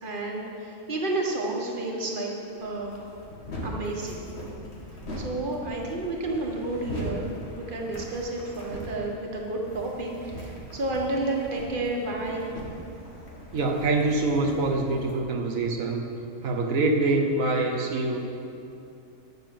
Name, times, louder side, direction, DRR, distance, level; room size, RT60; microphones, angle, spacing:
voice 1, 0.0-2.3 2.6-3.0 3.6-4.3 5.2-7.3 7.5-12.5, right 2 dB, 40° right, -1 dB, 1.7 m, -31 dB
sound 1, 2.6-15.2, equal, 55° left, 2.2 m, -40 dB
voice 2, 13.5-16.0 16.4-18.3, right 2 dB, 85° right, 1 dB, 1.4 m, -25 dB
12.0 x 6.8 x 7.7 m, 2.7 s
omnidirectional pair, 1.4 m